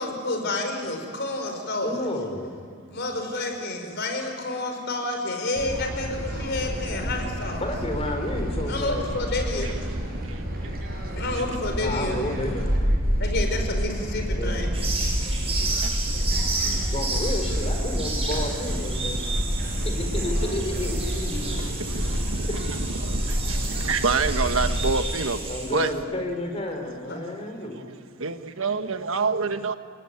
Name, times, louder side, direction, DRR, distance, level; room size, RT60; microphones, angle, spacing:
voice 1, 0.0-2.1 2.9-7.6 8.6-9.8 11.2-12.2 13.2-14.7 27.1-27.2, left 2 dB, 55° left, 4 dB, 5.4 m, -29 dB
voice 2, 1.8-2.6 7.6-9.1 11.7-12.8 14.4-14.6 16.9-19.3 19.8-21.6 22.5-22.6 25.4-27.9, left 1 dB, 30° left, 4 dB, 4.5 m, -31 dB
sound 1, 5.6-24.9, equal, 45° right, 6.3 m, -28 dB
sound 2, 14.7-25.9, right 3 dB, 30° right, 6.0 m, -33 dB
voice 3, 15.1-16.8 19.0-19.9 21.4-25.9 27.7-27.9 28.2-29.8, right 4 dB, 75° right, 9 dB, 1.4 m, -29 dB
29.5 x 20.5 x 9.5 m, 2.2 s
head